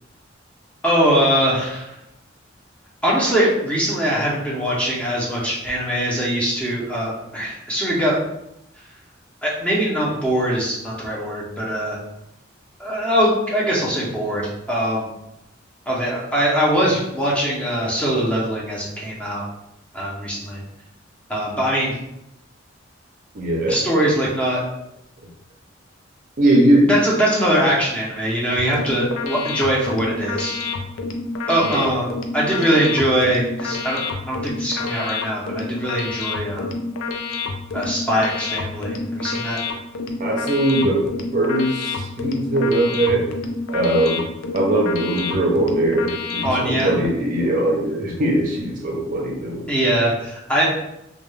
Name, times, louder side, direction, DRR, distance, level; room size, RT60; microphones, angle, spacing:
voice 1, 0.8-1.9 3.0-8.2 9.4-12.0 12.8-14.4 14.7-15.1 15.9-19.4 19.9-20.6 21.3-21.9 23.7-24.6 26.9-30.6 31.5-32.1 32.3-34.0 34.3-36.7 37.7-39.6 46.4-46.9 49.7-50.6, equal, 5° left, -5 dB, 0.6 m, -21 dB
voice 2, 23.3-23.8 26.4-27.0 31.6-31.8 40.2-41.0 41.3-43.3 43.7-44.2 44.5-49.7, right 1 dB, 45° right, -1 dB, 0.5 m, -20 dB
sound 1, 28.6-47.1, left 4 dB, 85° left, 0.4 m, -29 dB
2.2 x 2.2 x 3.1 m, 0.83 s
head